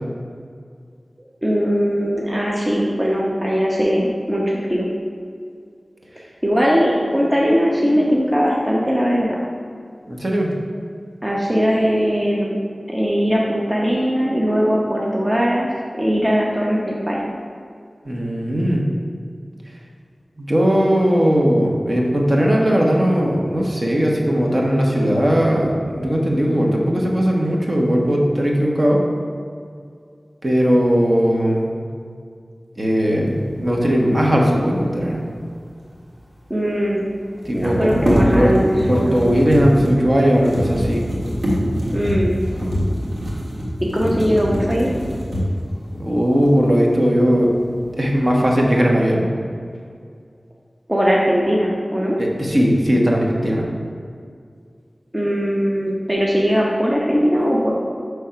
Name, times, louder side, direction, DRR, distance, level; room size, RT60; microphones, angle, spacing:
voice 1, 1.4-4.9 6.4-9.4 11.2-12.6 12.9-15.7 15.9-17.3 36.5-37.0 37.5-39.2 41.9-42.4 43.8-44.9 50.9-52.2 55.1-57.7, equal, 20° right, -3 dB, 0.8 m, -19 dB
voice 2, 10.1-10.5 18.0-18.8 20.4-29.0 30.4-31.7 32.8-35.2 37.4-38.5 38.9-41.1 45.9-47.5 48.0-49.3 52.2-53.6, equal, 40° right, -2 dB, 1.1 m, -18 dB
sound 1, 35.9-36.0 36.2-36.3 37.4-45.7 46.4-46.5 47.0-47.6 48.0-48.5, equal, 65° right, 1.6 m, -23 dB
6.4 x 3.4 x 5.7 m, 2.2 s
wide cardioid pair, 55°, 0 cm